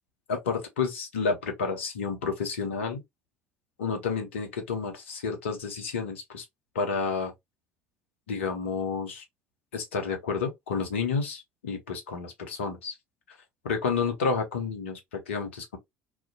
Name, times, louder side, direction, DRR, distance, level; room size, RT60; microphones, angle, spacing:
voice 1, 0.3-3.0 3.8-6.4 6.7-7.3 8.3-9.2 9.7-13.0 13.6-15.8, left 5 dB, 70° left, 0.6 m, -30 dB
2.4 x 2.1 x 2.4 m
figure-of-eight pair, 60°, 7 cm